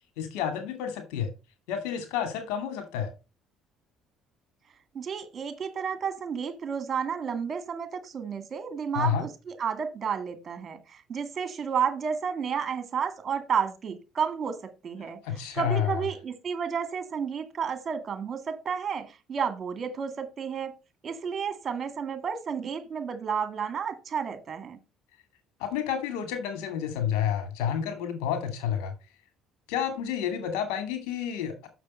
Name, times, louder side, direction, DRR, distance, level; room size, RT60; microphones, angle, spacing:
voice 1, 0.2-1.3 1.7-3.1 8.9-9.2 15.2-16.0 25.6-28.9 29.7-31.7, left 8 dB, 80° left, 2.4 m, -30 dB
voice 2, 4.9-15.2 15.5-20.7 21.0-24.8, right 7 dB, 40° right, 2.1 m, -31 dB
6.7 x 6.5 x 5.4 m
supercardioid pair, 75°, 0 cm